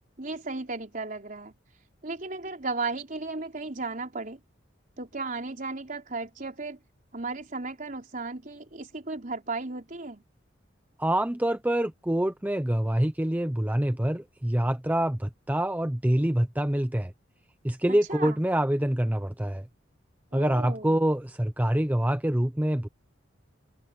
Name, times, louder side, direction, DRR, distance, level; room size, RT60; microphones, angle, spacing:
voice 1, 0.2-1.5 2.0-4.4 5.0-6.8 7.1-10.2 18.1-18.4 20.3-21.1, right 3 dB, 45° right, 4.1 m, -35 dB
voice 2, 11.0-17.1 17.6-19.7 20.3-22.9, right 1 dB, 10° right, 0.7 m, -26 dB
open air
head